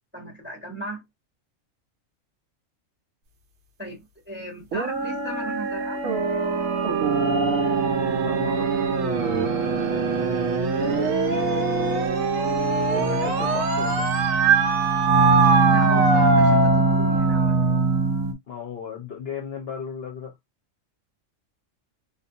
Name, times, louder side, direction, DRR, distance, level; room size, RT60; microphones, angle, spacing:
voice 1, 0.1-1.0 3.8-6.1 11.3-11.6 12.3-12.6 15.7-17.7, right 1 dB, 10° right, 0.8 m, -37 dB
sound 1, 4.7-18.3, right 4 dB, 80° right, 1.0 m, -21 dB
voice 2, 7.2-9.1 10.7-11.5 12.9-14.1 18.5-20.3, left 7 dB, 60° left, 0.7 m, -36 dB
2.5 x 2.4 x 2.6 m
omnidirectional pair, 1.4 m